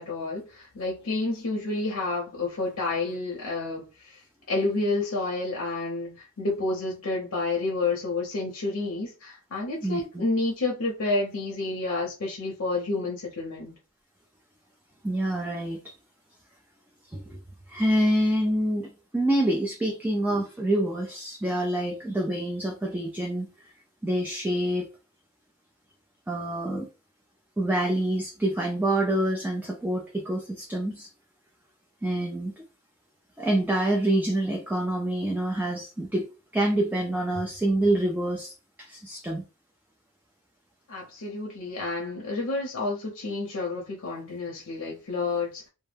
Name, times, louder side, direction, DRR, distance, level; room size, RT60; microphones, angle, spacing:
voice 1, 0.0-4.2 4.5-13.8 40.9-45.7, left 3 dB, 70° left, 0.6 m, -30 dB
voice 2, 9.8-10.3 15.0-15.9 17.1-17.4 17.7-23.5 24.0-24.9 26.3-26.9 27.6-31.1 32.0-32.6 33.4-36.3 36.5-39.4, right 1 dB, 10° right, 0.3 m, -26 dB
2.1 x 2.0 x 3.2 m
head